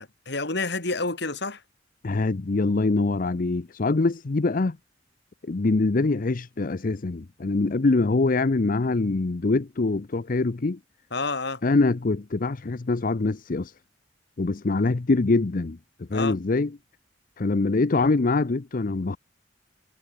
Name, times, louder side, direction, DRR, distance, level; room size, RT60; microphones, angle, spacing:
voice 1, 0.0-1.6 11.1-11.6 16.1-16.4, left 3 dB, 65° left, 3.7 m, -29 dB
voice 2, 2.0-4.8 5.4-10.8 11.6-13.7 14.4-15.8 16.1-16.7 17.4-19.2, left 3 dB, 50° left, 0.6 m, -24 dB
head